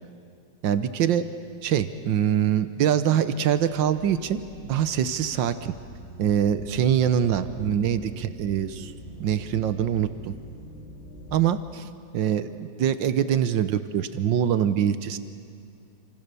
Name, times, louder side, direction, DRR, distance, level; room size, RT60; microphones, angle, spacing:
voice 1, 0.6-1.3 1.6-5.7 6.2-8.9 9.2-10.3 11.3-11.9 12.1-15.2, right 9 dB, 80° right, 12 dB, 1.6 m, -24 dB
sound 1, 3.1-11.5, right 2 dB, 35° left, 3.2 m, -44 dB
28.5 x 26.5 x 6.8 m, 2.5 s
omnidirectional pair, 2.0 m